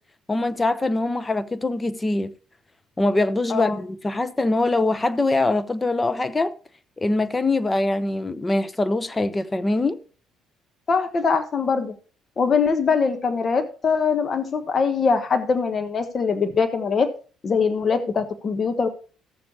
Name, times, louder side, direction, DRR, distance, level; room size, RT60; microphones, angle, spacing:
voice 1, 0.3-2.3 3.0-6.5 7.0-10.0, left 2 dB, 20° left, 1.0 m, -23 dB
voice 2, 10.9-11.9 12.4-17.1 17.4-18.9, left 5 dB, 45° left, 1.2 m, -22 dB
16.0 x 7.0 x 3.0 m
hypercardioid pair, 60°, 0 cm